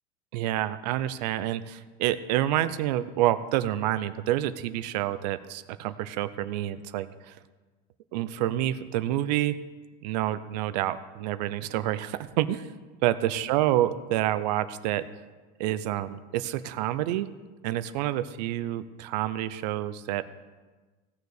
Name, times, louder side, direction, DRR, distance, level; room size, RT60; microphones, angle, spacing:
voice 1, 0.3-7.4 8.1-9.6 10.0-12.7 13.0-15.0 15.6-17.3 17.6-20.2, right 13 dB, 80° right, 13 dB, 0.7 m, -28 dB
16.5 x 6.8 x 6.5 m, 1.3 s
supercardioid pair, 145°, 21 cm